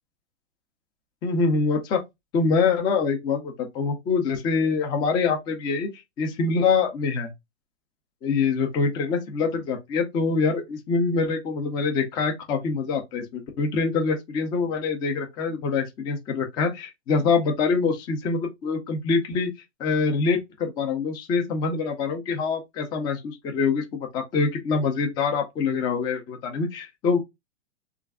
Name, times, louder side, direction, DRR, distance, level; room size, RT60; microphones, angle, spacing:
voice 1, 1.2-2.0 2.3-5.9 6.2-7.3 8.2-19.5 19.8-27.2, left 4 dB, 15° left, 0.3 m, -25 dB
3.1 x 2.4 x 3.4 m
hypercardioid pair, 140°, 35 cm